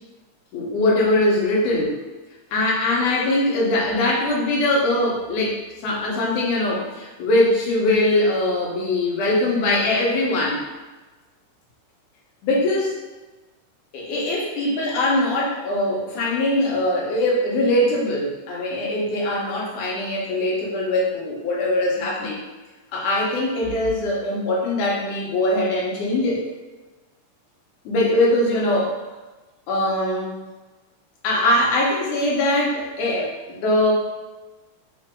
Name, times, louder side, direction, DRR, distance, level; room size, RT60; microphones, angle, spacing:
voice 1, 0.5-2.0 2.5-10.6 12.4-12.9 13.9-22.4 22.9-26.4 27.9-28.9 29.7-30.4 31.2-33.9, left 1 dB, 75° left, -3 dB, 2.3 m, -22 dB
5.4 x 2.6 x 3.6 m, 1.2 s
omnidirectional pair, 3.8 m